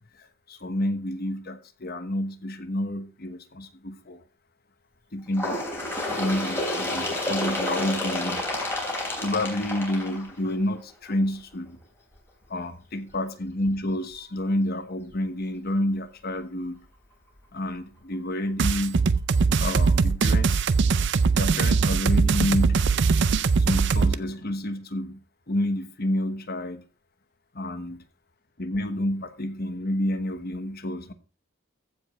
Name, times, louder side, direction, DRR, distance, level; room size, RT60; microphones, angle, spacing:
voice 1, 0.0-4.2 5.1-5.6 6.2-8.5 9.2-11.8 12.5-16.8 17.5-19.0 19.6-20.6 21.3-22.8 23.6-25.2 25.5-26.8 27.5-28.0 28.6-31.1, left 1 dB, 45° left, 1.2 m, -29 dB
Bird, 5.3-10.8 11.7-11.8 12.2-12.3 13.1-13.2 14.1-14.2 15.1-15.2, left 1 dB, 10° left, 3.5 m, -30 dB
sound 1, 18.6-24.1, right 4 dB, 55° right, 0.5 m, -21 dB
15.0 x 5.1 x 5.4 m
head